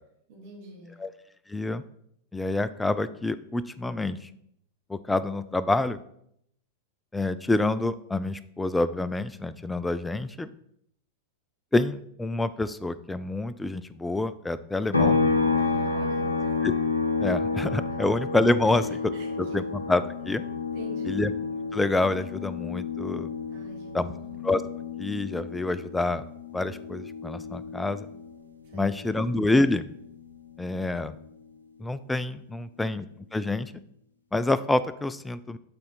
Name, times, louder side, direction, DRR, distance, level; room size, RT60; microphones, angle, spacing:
voice 1, 0.3-1.0 15.6-16.6 18.6-18.8 19.1-19.6 20.7-21.2 23.5-24.4 28.6-29.2, right 2 dB, 50° right, -1 dB, 1.7 m, -46 dB
voice 2, 1.5-1.8 2.3-4.3 4.9-6.0 7.1-10.5 11.7-15.2 16.6-16.7 17.2-19.1 19.4-20.4 21.0-21.3 21.7-23.3 23.9-24.1 24.4-24.6 25.0-26.2 26.5-28.1 28.7-29.9 30.6-31.2 31.8-33.1 33.3-33.7 34.3-35.6, left 2 dB, 10° left, 15 dB, 0.3 m, -27 dB
sound 1, 14.9-28.5 28.8-31.0, left 4 dB, 80° left, 0.7 m, -30 dB
8.8 x 4.2 x 4.0 m, 0.72 s
figure-of-eight pair, 90°, 0 cm